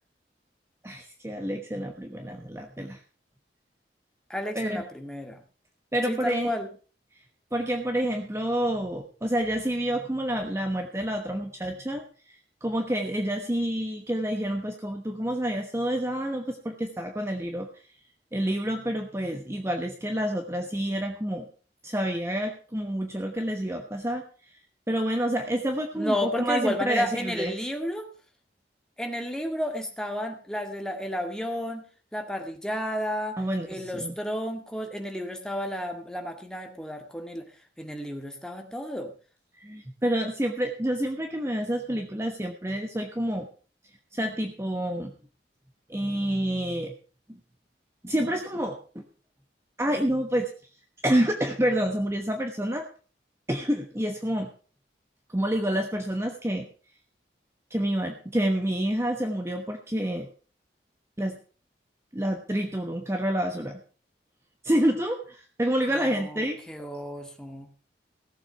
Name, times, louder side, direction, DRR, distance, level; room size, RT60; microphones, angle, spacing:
voice 1, 0.8-3.0 4.5-4.8 5.9-6.6 7.5-12.4 12.6-17.7 18.3-21.5 21.8-24.2 24.9-27.6 33.4-34.1 39.6-43.5 44.1-45.1 45.9-46.9 47.3-47.4 48.0-49.0 49.8-50.5 51.0-52.9 53.5-54.5 55.3-56.7 57.7-60.3 61.2-61.4 62.1-63.8 64.6-66.9, right 1 dB, 15° right, 4 dB, 1.1 m, -28 dB
voice 2, 4.3-5.4 6.1-6.7 25.9-28.1 29.0-31.8 32.1-33.4 33.7-37.4 37.8-39.1 66.0-67.7, equal, 5° left, 3 dB, 2.0 m, -32 dB
16.5 x 7.6 x 5.8 m, 0.38 s
head